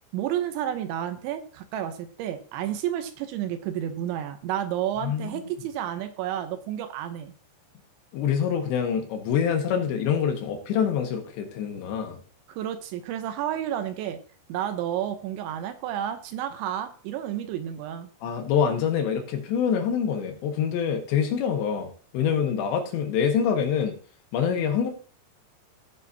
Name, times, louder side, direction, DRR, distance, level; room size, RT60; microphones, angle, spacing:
voice 1, 0.1-7.3 12.5-14.2 14.5-18.1, right 11 dB, 80° right, 9 dB, 3.0 m, -31 dB
voice 2, 5.0-5.4 8.1-12.2 18.2-24.0 24.3-24.9, left 7 dB, 70° left, 4 dB, 3.4 m, -25 dB
16.0 x 6.8 x 2.7 m, 0.42 s
omnidirectional pair, 5.5 m